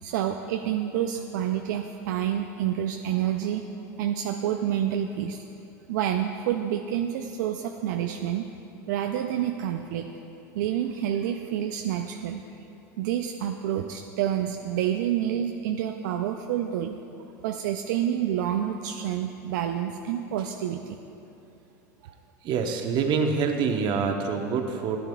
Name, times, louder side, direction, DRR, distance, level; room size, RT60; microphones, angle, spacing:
voice 1, 0.0-3.7 4.0-5.4 5.9-8.5 8.9-10.1 10.5-12.4 13.0-16.9 17.4-21.0 22.0-22.2, right 10 dB, 75° right, 4 dB, 0.4 m, -28 dB
voice 2, 22.4-25.0, right 5 dB, 50° right, 4 dB, 0.9 m, -26 dB
12.0 x 10.5 x 2.3 m, 2.8 s
hypercardioid pair, 95°, 10 cm